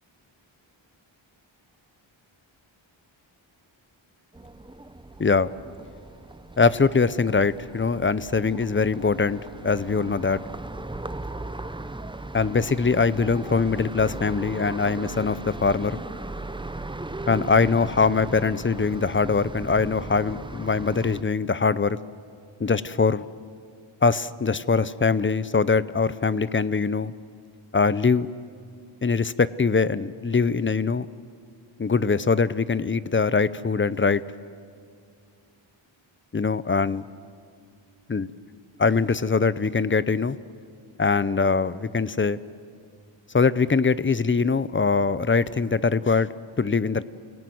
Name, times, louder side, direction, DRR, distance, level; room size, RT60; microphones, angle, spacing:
sound 1, 4.3-21.2, right 2 dB, 10° right, 0.7 m, -38 dB
voice 1, 6.6-10.4 12.3-16.0 17.3-22.0 22.6-23.2 24.0-27.1 27.7-28.3 29.0-31.1 31.8-34.2 36.3-37.0 38.1-38.3 38.8-40.4 41.0-42.4 43.3-47.0, left 4 dB, 25° left, 17 dB, 0.6 m, -22 dB
29.5 x 17.5 x 9.4 m, 2.2 s
wide cardioid pair, 130°, 48 cm